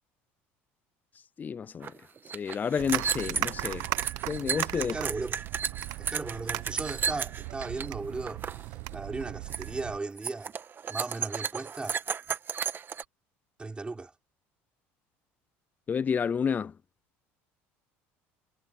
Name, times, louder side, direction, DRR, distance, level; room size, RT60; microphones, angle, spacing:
voice 1, 1.4-1.9 2.3-3.9 4.3-4.9 15.9-16.7, left 6 dB, 30° left, 0.4 m, -30 dB
sound 1, 1.8-1.9 2.2-7.9 8.2-8.6 8.9-9.2 9.5-9.8 10.2-13.0, right 6 dB, 35° right, 1.8 m, -33 dB
sound 2, 2.8-10.0, right 21 dB, 75° right, 0.9 m, -37 dB
voice 2, 4.8-5.4 6.0-10.5 10.9-12.0 13.6-14.1, right 3 dB, 20° right, 4.0 m, -37 dB
supercardioid pair, 90°, 6 cm